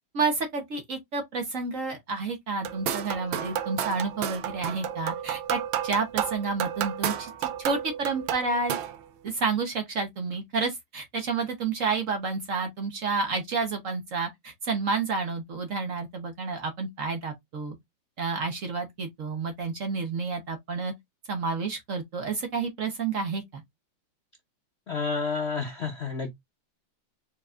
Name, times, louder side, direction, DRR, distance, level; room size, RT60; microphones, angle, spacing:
voice 1, 0.1-8.8 9.2-17.8 18.2-20.9 21.3-23.6, right 4 dB, 50° right, 1.1 m, -30 dB
sound 1, 2.6-9.0, right 10 dB, 85° right, 1.4 m, -32 dB
voice 2, 24.9-26.3, left 4 dB, 55° left, 0.7 m, -30 dB
4.6 x 4.1 x 2.4 m
omnidirectional pair, 2.1 m